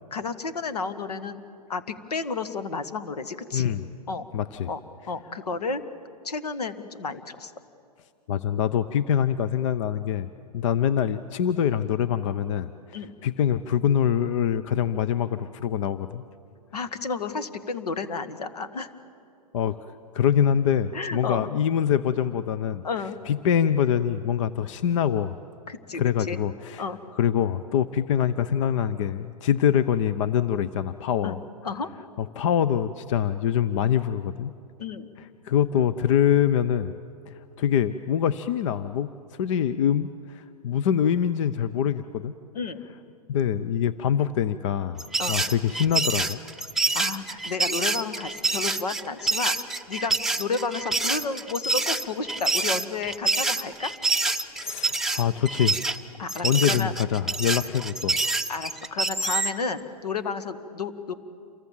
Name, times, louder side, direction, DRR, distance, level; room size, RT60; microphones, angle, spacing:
voice 1, 0.1-1.4 1.7-3.7 4.1-4.3 4.7-4.8 5.1-5.8 6.2-7.5 12.9-13.1 16.7-18.9 20.9-21.5 22.8-23.2 25.7-26.4 26.8-27.0 31.2-31.4 31.6-31.9 34.8-35.1 42.5-42.8 45.2-45.4 46.9-49.6 49.9-53.9 56.2-56.9 58.5-61.1, left 4 dB, 75° left, 14 dB, 1.7 m, -31 dB
voice 2, 3.5-3.8 4.3-4.7 8.3-10.3 10.5-12.7 13.2-16.2 19.5-19.8 20.1-22.8 23.3-25.4 25.9-26.8 27.1-31.4 32.2-34.5 35.2-36.9 37.3-39.1 39.4-42.3 43.3-46.4 54.6-55.8 56.4-58.2, left 9 dB, 50° left, 13 dB, 0.7 m, -24 dB
sound 1, 45.0-59.6, right 3 dB, ahead, 0.8 m, -27 dB
28.5 x 24.0 x 7.4 m, 2.6 s
hypercardioid pair, 120°, 20 cm